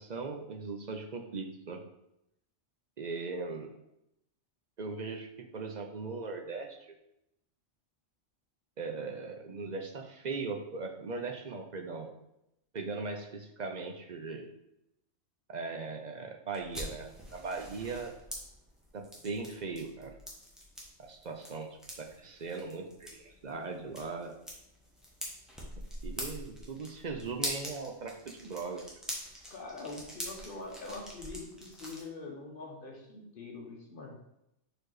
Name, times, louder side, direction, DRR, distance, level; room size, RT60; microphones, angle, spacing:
voice 1, 0.0-1.8 3.0-3.7 4.8-7.0 8.8-12.1 12.7-14.5 15.5-18.2 18.9-20.1 21.0-24.4 25.8-28.9, right 4 dB, 45° right, 4 dB, 0.6 m, -39 dB
sound 1, 16.5-32.0, equal, ahead, 1.3 m, -44 dB
voice 2, 29.5-34.2, left 3 dB, 50° left, 0 dB, 1.3 m, -44 dB
4.6 x 4.5 x 4.7 m, 0.82 s
omnidirectional pair, 1.2 m